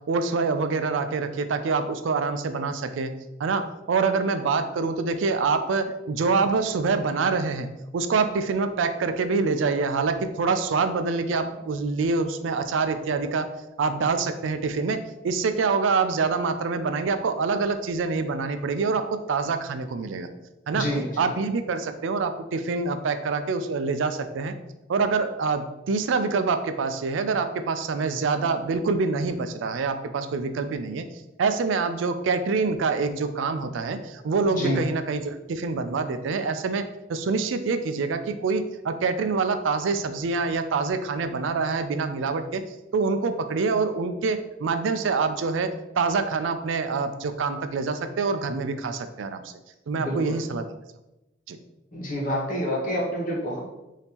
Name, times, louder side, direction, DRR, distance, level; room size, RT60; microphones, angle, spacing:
voice 1, 0.1-3.1 3.4-7.7 7.9-13.5 13.8-20.3 20.7-20.9 21.2-24.5 24.9-31.1 31.4-42.6 42.9-49.4 49.9-50.6 51.5-51.6, right 4 dB, 85° right, 9 dB, 0.4 m, -26 dB
voice 2, 20.7-21.3 34.6-34.8 49.9-50.4 51.9-53.6, equal, 45° left, -3 dB, 1.2 m, -28 dB
5.2 x 2.7 x 2.9 m, 0.95 s
head